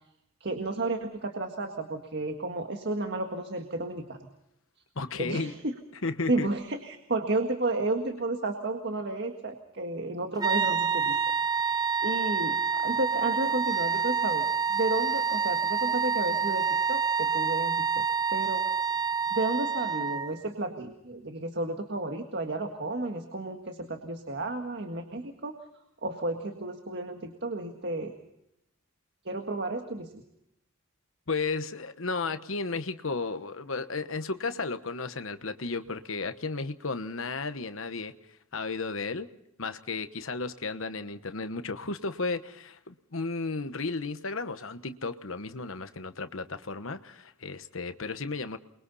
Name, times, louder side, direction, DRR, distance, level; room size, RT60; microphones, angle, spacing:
voice 1, 0.4-4.3 5.2-5.7 6.3-11.2 11.5-18.0 18.3-18.7 19.3-25.6 26.0-28.1 29.3-30.2, right 2 dB, 55° right, 1.8 m, -32 dB
voice 2, 4.9-5.5 6.0-6.5 31.3-38.1 38.5-39.3 39.6-48.6, left 3 dB, 70° left, 1.2 m, -34 dB
sound 1, 10.4-20.4, right 6 dB, 20° right, 0.8 m, -27 dB
29.0 x 22.5 x 4.2 m
head